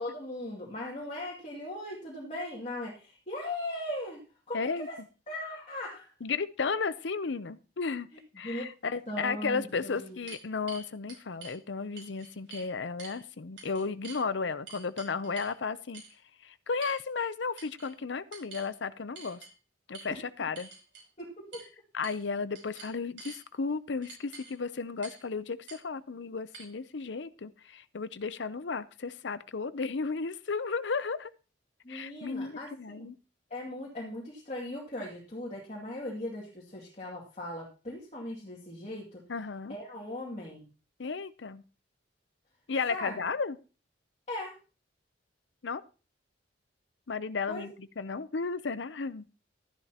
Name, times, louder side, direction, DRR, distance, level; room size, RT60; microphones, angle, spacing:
voice 1, 0.0-4.2 4.5-5.0 5.3-6.1 8.3-8.7 9.1-10.2 21.2-21.3 31.8-33.1 33.5-39.2 39.7-40.7 42.9-43.2 44.3-44.6 47.5-47.7, left 1 dB, 35° left, -4 dB, 2.5 m, -38 dB
voice 2, 4.5-4.9 6.2-8.1 8.4-16.0 16.4-19.4 19.9-20.7 21.9-31.3 31.9-33.2 39.3-39.7 41.0-41.6 42.7-43.6 45.6-45.8 47.1-49.3, left 4 dB, 70° left, 14 dB, 0.7 m, -34 dB
sound 1, 9.1-9.2 9.7-11.6 12.0-12.7 13.0-13.2 13.6-14.2 14.7-15.6 15.9-16.2 16.8-17.3 17.6-17.9 18.3-18.7 19.2-19.5 19.9-20.1 20.6-21.1 21.5-21.7 22.0-22.3 22.6-23.4 24.0-24.5 25.0-25.3 25.7-25.8 26.5-26.6, right 4 dB, 75° right, 5.1 m, -47 dB
13.0 x 11.0 x 2.9 m, 0.34 s
head